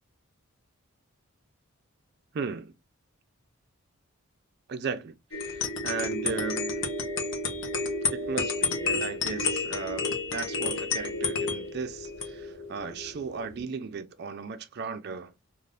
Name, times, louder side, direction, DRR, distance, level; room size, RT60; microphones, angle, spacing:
voice 1, 2.3-2.7 4.7-6.8 8.1-15.3, right 5 dB, 45° right, 0.3 m, -36 dB
sound 1, 5.3-13.6, left 3 dB, 55° left, 0.7 m, -31 dB
3.3 x 2.4 x 2.4 m
head